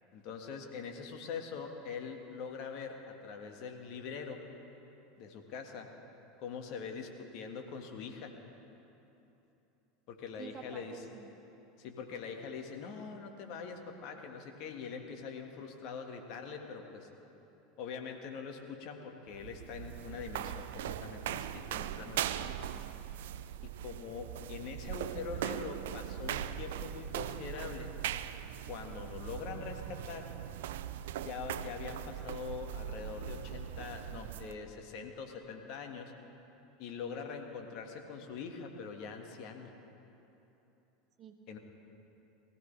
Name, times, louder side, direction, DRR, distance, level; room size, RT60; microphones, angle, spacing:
voice 1, 0.1-4.4 5.2-5.9 6.4-8.4 10.1-10.9 11.8-17.1 17.8-22.5 23.6-27.9 28.7-30.3 31.2-36.1 36.8-39.7 41.5-41.6, left 5 dB, 55° left, 4 dB, 1.7 m, -43 dB
voice 2, 10.4-11.3 41.2-41.6, right 7 dB, 40° right, 5 dB, 1.4 m, -49 dB
sound 1, 19.3-34.6, right 11 dB, 70° right, 0.4 m, -40 dB
21.5 x 15.5 x 3.4 m, 3.0 s
hypercardioid pair, 80°, 0 cm